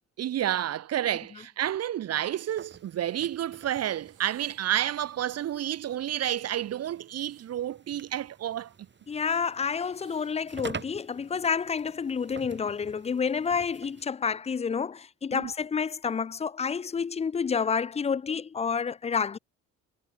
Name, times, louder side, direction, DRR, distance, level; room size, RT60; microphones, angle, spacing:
voice 1, 0.2-8.7 15.3-15.5, right 11 dB, 55° right, 0.7 m, -30 dB
sound 1, 2.5-14.0, right 5 dB, 35° right, 7.5 m, -48 dB
sound 2, 4.0-4.8 7.0-8.6 9.8-10.4 11.4-11.8, right 13 dB, 80° right, 6.4 m, -61 dB
voice 2, 9.1-19.4, left 6 dB, 20° left, 0.4 m, -29 dB
cardioid pair, 90°, 30 cm